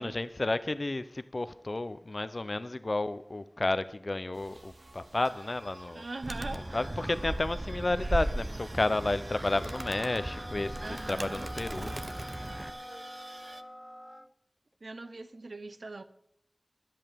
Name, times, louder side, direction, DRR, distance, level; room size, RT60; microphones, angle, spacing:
voice 1, 0.0-6.1 6.5-10.8 11.1-12.0, left 2 dB, 60° left, 0.7 m, -32 dB
sound 1, 4.3-13.6, right 2 dB, 60° right, 0.8 m, -50 dB
voice 2, 5.9-6.8 10.8-11.5 14.8-16.0, right 2 dB, 90° right, 0.9 m, -41 dB
Animal, 6.2-12.7, right 1 dB, 40° right, 0.9 m, -37 dB
sound 2, 9.7-14.3, equal, 15° left, 0.6 m, -45 dB
11.0 x 10.5 x 6.8 m
wide cardioid pair, 55°, 0 cm